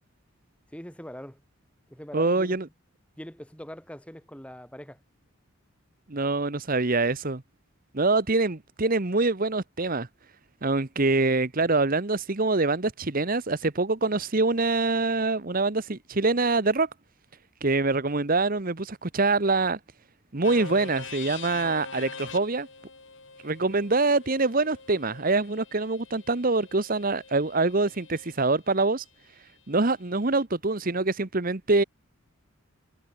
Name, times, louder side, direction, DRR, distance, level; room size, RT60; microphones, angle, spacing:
voice 1, 0.7-1.4 1.9-2.6 3.2-5.0, equal, 5° left, 6.9 m, -42 dB
voice 2, 2.1-2.7 6.1-7.4 7.9-10.1 10.6-16.9 17.6-19.8 20.3-22.7 23.4-29.0 29.7-31.8, right 3 dB, 45° right, 1.2 m, -25 dB
sound 1, 20.4-28.3, left 5 dB, 60° left, 7.7 m, -44 dB
head